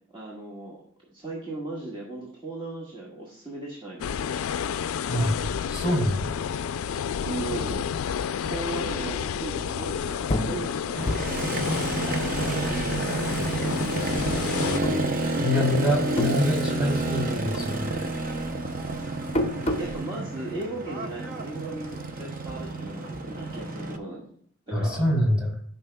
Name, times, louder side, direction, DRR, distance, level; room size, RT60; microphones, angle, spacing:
voice 1, 0.1-0.8 1.1-4.2 5.1-5.2 7.2-7.9 8.4-11.6 12.0-12.2 12.7-13.1 13.5-14.1 19.8-24.3 24.7-25.1, right 2 dB, 25° right, -5 dB, 1.5 m, -37 dB
sound 1, 4.0-14.8, left 7 dB, 80° left, 0.3 m, -30 dB
voice 2, 5.7-6.3 15.4-17.9 24.7-25.5, left 1 dB, 5° right, -3 dB, 2.9 m, -25 dB
sound 2, 10.3-13.2 13.5-14.3 14.8-15.7 15.9-17.3 17.5-20.0, left 1 dB, 30° left, 0.6 m, -31 dB
Motorcycle, 11.0-24.0, right 2 dB, 40° right, 0.6 m, -29 dB
13.0 x 5.7 x 2.2 m, 0.62 s
head